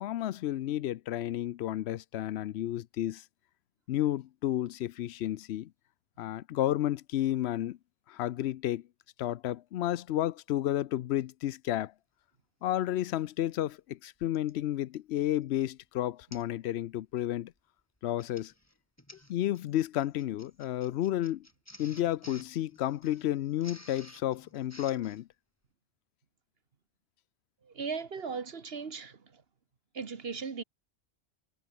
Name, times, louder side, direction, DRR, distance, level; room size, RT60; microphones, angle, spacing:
voice 1, 0.0-3.2 3.9-5.7 6.2-7.8 8.1-8.8 9.2-11.9 12.6-17.5 18.0-18.5 19.3-21.5 21.8-25.3, left 13 dB, 80° left, 0.8 m, -31 dB
Printer, 14.3-14.6 15.2-15.4 15.7-15.8 16.3-16.6 16.9-17.2 18.0-25.2, left 1 dB, 15° left, 3.4 m, -54 dB
voice 2, 27.6-29.4 29.9-30.6, right 5 dB, 65° right, 1.6 m, -38 dB
omnidirectional pair, 1.1 m